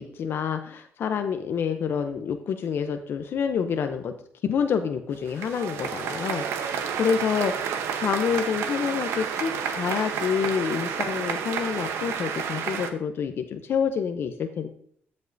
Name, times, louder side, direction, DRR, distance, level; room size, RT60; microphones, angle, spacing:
voice 1, 0.0-4.1 4.4-6.7 7.0-7.5 8.0-14.7, left 7 dB, 60° left, 7 dB, 0.6 m, -27 dB
sound 1, 5.1-12.9, right 7 dB, 85° right, 0.9 m, -30 dB
13.5 x 5.3 x 2.6 m, 0.63 s
cardioid pair, 105°, 4 cm